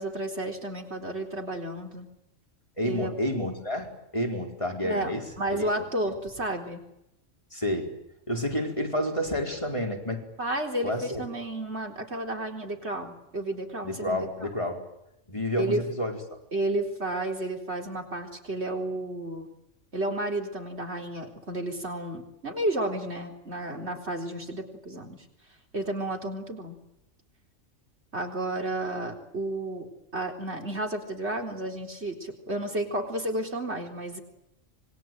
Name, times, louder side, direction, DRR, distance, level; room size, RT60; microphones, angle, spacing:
voice 1, 0.0-2.1 2.8-3.1 4.8-5.1 5.4-6.8 10.4-14.5 15.6-15.8 16.5-19.5 19.9-25.2 25.7-26.8 28.1-34.2, right 1 dB, 55° right, 3 dB, 4.3 m, -32 dB
voice 2, 2.8-5.2 5.5-5.7 7.5-7.9 8.3-10.2 10.8-11.2 13.8-14.8 15.3-16.2, left 1 dB, 25° left, 2 dB, 4.7 m, -29 dB
27.0 x 22.5 x 9.3 m, 0.83 s
omnidirectional pair, 1.3 m